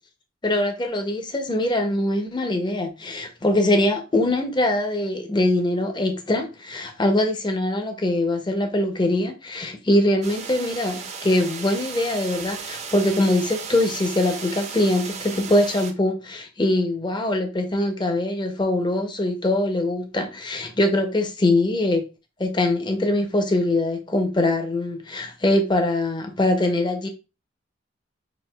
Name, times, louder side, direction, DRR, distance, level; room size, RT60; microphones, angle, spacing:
voice 1, 0.4-22.0 22.4-27.1, left 1 dB, 25° left, 0.6 m, -22 dB
sound 1, 10.2-15.9, right 6 dB, 35° right, 0.5 m, -35 dB
6.0 x 2.6 x 2.2 m
head